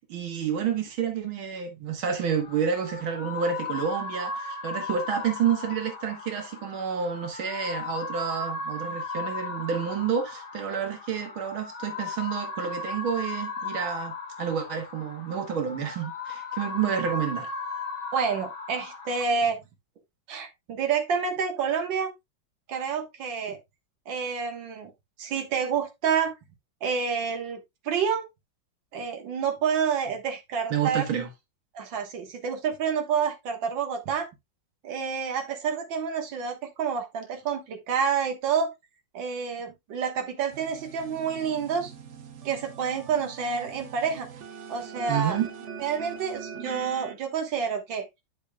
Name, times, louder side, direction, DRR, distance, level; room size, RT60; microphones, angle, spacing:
voice 1, 0.1-17.5 30.7-31.3 45.1-45.5, right 7 dB, 85° right, 2.1 m, -29 dB
sound 1, 2.2-19.2, left 3 dB, 35° left, 1.1 m, -36 dB
voice 2, 18.1-19.6 20.3-22.1 22.7-23.6 24.1-24.9 25.2-26.3 26.8-27.6 27.8-28.3 28.9-31.0 31.7-34.3 34.8-38.7 39.1-41.9 42.4-44.3 44.7-45.4 45.8-48.0, right 6 dB, 70° right, 2.2 m, -28 dB
sound 2, 40.5-47.1, right 6 dB, 55° right, 0.9 m, -42 dB
10.5 x 6.1 x 2.3 m
omnidirectional pair, 2.2 m